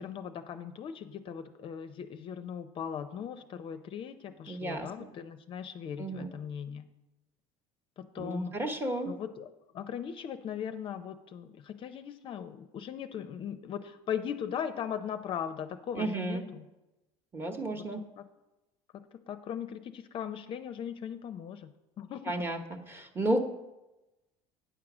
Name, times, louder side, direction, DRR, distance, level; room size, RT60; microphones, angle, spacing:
voice 1, 0.0-6.9 8.0-8.5 9.0-9.5 9.7-16.7 17.7-17.8 18.2-18.3 18.9-21.7 22.0-22.3, left 8 dB, 40° left, 9 dB, 0.5 m, -39 dB
voice 2, 4.5-4.9 6.0-6.3 8.2-9.1 15.9-16.4 17.3-18.0 22.3-22.6 22.9-23.4, right 1 dB, 15° right, 5 dB, 0.9 m, -32 dB
9.2 x 6.3 x 6.0 m, 1.0 s
cardioid pair, 140°, 13 cm